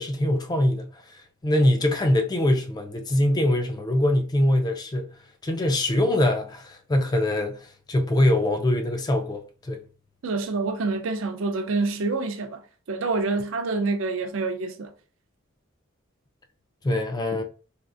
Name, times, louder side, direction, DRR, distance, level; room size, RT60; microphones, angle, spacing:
voice 1, 0.0-5.1 5.4-9.8 16.8-17.4, left 1 dB, 20° left, 0.3 m, -23 dB
voice 2, 10.2-12.6 12.9-14.9, right 3 dB, 75° right, 0.5 m, -27 dB
3.6 x 2.4 x 2.4 m
head